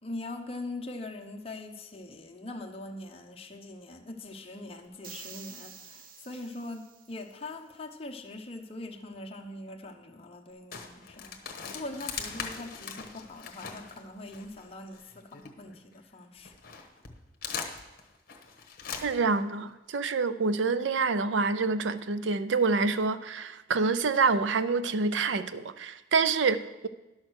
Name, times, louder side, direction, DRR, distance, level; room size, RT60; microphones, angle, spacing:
voice 1, 0.0-16.6, left 2 dB, 35° left, 0.9 m, -42 dB
sound 1, 5.0-7.3, right 6 dB, 50° right, 0.8 m, -48 dB
sound 2, 10.7-15.9 16.4-19.4, left 6 dB, 55° left, 1.1 m, -41 dB
voice 2, 19.0-26.9, right 4 dB, 75° right, 0.5 m, -27 dB
11.0 x 6.3 x 6.3 m
head